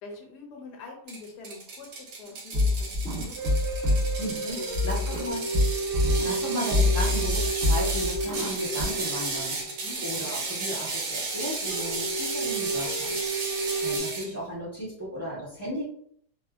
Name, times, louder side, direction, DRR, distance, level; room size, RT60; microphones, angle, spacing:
voice 1, 0.0-3.7 4.0-4.2 4.6-5.0 9.6-10.1, left 3 dB, 80° left, 1 dB, 1.2 m, -45 dB
Ratchet pawl, 1.1-14.3, right 3 dB, 85° right, 1.4 m, -33 dB
sound 1, 2.3-4.3 4.7-6.5 6.7-8.8, left 2 dB, 35° right, 1.3 m, -26 dB
sound 2, 3.4-10.7 11.0-11.1 11.4-11.5 11.7-14.0, right 3 dB, 65° right, 0.7 m, -33 dB
voice 2, 4.2-5.5 6.2-13.2 13.8-15.8, right 1 dB, 10° right, -11 dB, 0.8 m, -35 dB
3.4 x 2.0 x 2.3 m, 0.66 s
omnidirectional pair, 1.8 m